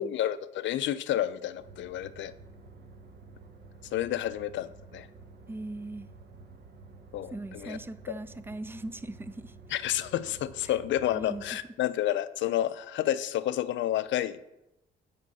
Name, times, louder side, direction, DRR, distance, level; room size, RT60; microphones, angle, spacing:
voice 1, 0.0-2.3 3.9-5.1 7.1-7.8 9.7-14.4, left 12 dB, 70° left, 15 dB, 0.4 m, -30 dB
sound 1, 1.6-11.5, right 3 dB, 55° right, 0.9 m, -51 dB
voice 2, 5.5-6.1 7.3-9.6 10.7-10.8 11.1-11.6, right 2 dB, 10° right, 15 dB, 0.3 m, -40 dB
8.3 x 3.7 x 5.5 m, 0.92 s
cardioid pair, 90°, 20 cm